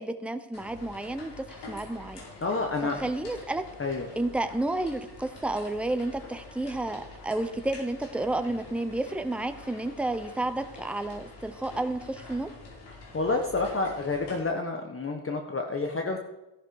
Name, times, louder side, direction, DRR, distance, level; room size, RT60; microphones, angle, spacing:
voice 1, 0.0-2.2 2.8-3.6 4.1-12.5, right 2 dB, 5° right, 8 dB, 0.9 m, -31 dB
sound 1, 0.5-14.4, left 3 dB, 70° left, 5.0 m, -46 dB
voice 2, 2.4-3.1 3.8-4.1 13.1-16.2, left 3 dB, 30° left, 3 dB, 1.5 m, -29 dB
14.0 x 11.5 x 4.8 m, 0.97 s
cardioid pair, 80°, 42 cm